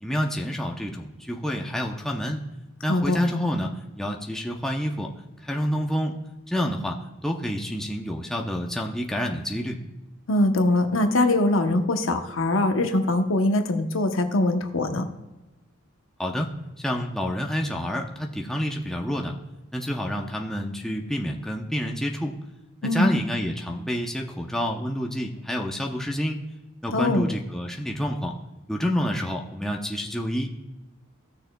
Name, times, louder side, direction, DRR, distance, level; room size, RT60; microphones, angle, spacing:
voice 1, 0.0-2.4 2.8-5.1 5.4-6.1 6.5-7.0 7.2-9.8 16.2-16.5 16.8-19.4 19.7-22.3 22.8-26.4 26.8-28.3 28.7-30.5, equal, ahead, 0 dB, 0.6 m, -28 dB
voice 2, 10.3-15.0 22.8-23.1 26.9-27.3, left 2 dB, 70° left, 6 dB, 0.8 m, -22 dB
16.0 x 6.4 x 2.2 m, 1.0 s
head